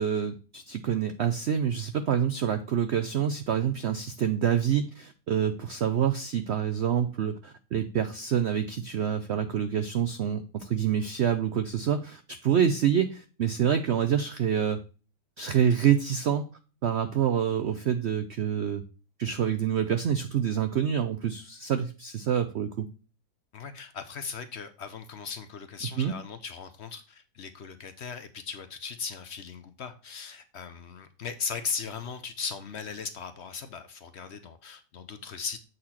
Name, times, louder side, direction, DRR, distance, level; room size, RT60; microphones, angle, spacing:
voice 1, 0.0-14.8 15.4-16.5 16.8-18.8 19.2-22.9 26.0-26.1, right 8 dB, 80° right, 10 dB, 0.5 m, -27 dB
voice 2, 23.5-35.6, left 6 dB, 65° left, 10 dB, 0.6 m, -38 dB
7.7 x 4.2 x 4.1 m, 0.36 s
omnidirectional pair, 1.8 m